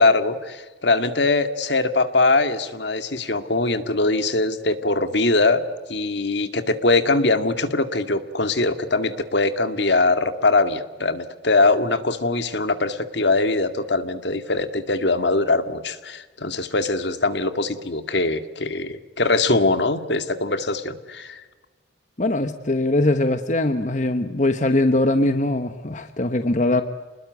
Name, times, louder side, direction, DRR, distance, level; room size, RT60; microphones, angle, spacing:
voice 1, 0.0-5.6 5.9-21.4, left 3 dB, 65° left, 10 dB, 2.0 m, -22 dB
voice 2, 22.2-26.8, left 2 dB, 40° left, 9 dB, 1.1 m, -21 dB
29.0 x 21.0 x 9.4 m, 1.3 s
head